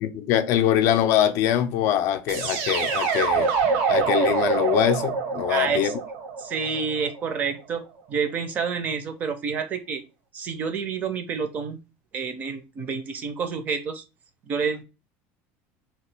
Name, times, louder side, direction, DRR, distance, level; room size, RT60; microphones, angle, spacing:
voice 1, 0.0-3.5 3.9-5.9, left 10 dB, 50° left, 0.4 m, -23 dB
sound 1, 2.3-7.2, right 5 dB, 80° right, 0.8 m, -25 dB
voice 2, 5.5-5.9 6.4-7.8 8.1-10.0 10.3-11.8 12.1-14.0 14.5-14.8, right 6 dB, 30° right, 0.5 m, -28 dB
2.9 x 2.7 x 3.2 m
cardioid pair, 165°, 6 cm